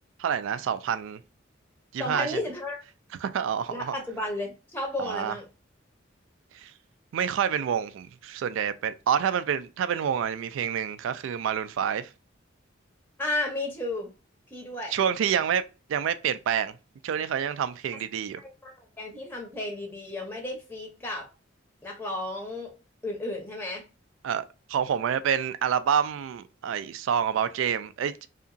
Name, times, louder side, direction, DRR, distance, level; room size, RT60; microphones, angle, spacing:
voice 1, 0.2-1.2 1.9-2.4 3.2-4.0 5.0-5.3 6.5-6.7 7.1-12.1 14.9-15.6 15.9-16.8 17.0-18.4 24.2-28.3, right 8 dB, 75° right, 0.3 m, -28 dB
voice 2, 2.0-2.8 3.7-5.4 13.2-14.1 14.5-14.9 18.4-21.2 21.8-22.7 23.0-23.8, left 2 dB, 10° left, 0.6 m, -33 dB
2.8 x 2.4 x 2.5 m
head